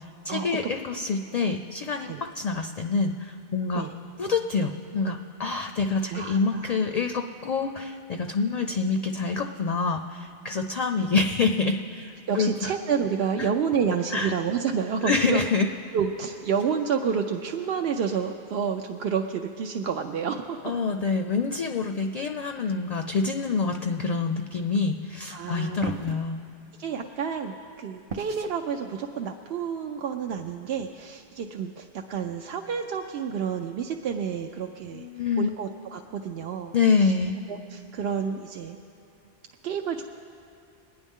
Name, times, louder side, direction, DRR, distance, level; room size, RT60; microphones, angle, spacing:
voice 1, 0.2-3.8 4.2-12.7 14.1-14.3 15.0-15.7 20.6-26.4 34.9-35.5 36.7-37.4, left 4 dB, 55° left, 6 dB, 0.5 m, -26 dB
voice 2, 6.1-6.8 12.3-15.4 15.9-20.6 25.3-25.9 26.8-35.1 35.4-37.1 37.5-38.8 39.6-40.0, right 6 dB, 75° right, 3 dB, 0.8 m, -29 dB
sound 1, 25.8-26.2 28.1-28.6, right 4 dB, 40° right, 0.6 m, -34 dB
21.5 x 9.6 x 3.6 m, 2.9 s
omnidirectional pair, 1.1 m